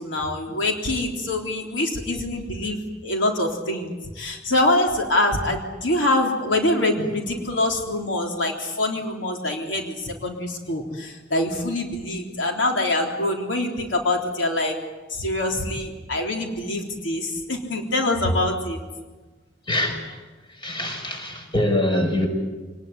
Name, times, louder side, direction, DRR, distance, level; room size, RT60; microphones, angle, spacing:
voice 1, 0.0-14.7 15.1-18.8, left 1 dB, 90° left, 2 dB, 3.6 m, -25 dB
voice 2, 19.7-20.0 20.6-22.3, left 1 dB, 25° left, 4 dB, 5.6 m, -24 dB
26.5 x 20.0 x 9.7 m, 1.3 s
head